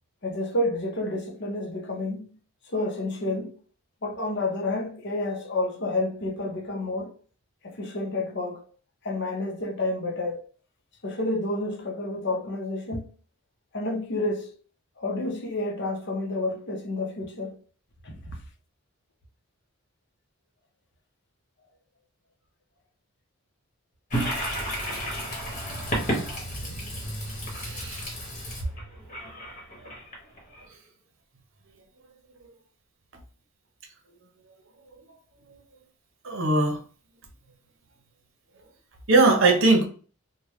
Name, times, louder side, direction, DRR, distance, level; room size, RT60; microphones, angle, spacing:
voice 1, 0.2-2.3 2.7-3.5 4.0-7.1 7.6-8.7 9.0-10.4 11.0-13.1 13.7-14.5 15.0-17.6 18.0-18.1 25.7-25.9 26.5-26.6 28.1-28.2, left 2 dB, 55° left, 0.7 m, -30 dB
Toilet flush, 24.1-30.6, equal, 35° left, 1.1 m, -32 dB
voice 2, 27.5-28.1 36.2-36.8 39.1-39.9, right 3 dB, 65° right, 0.8 m, -20 dB
3.3 x 2.2 x 3.1 m
head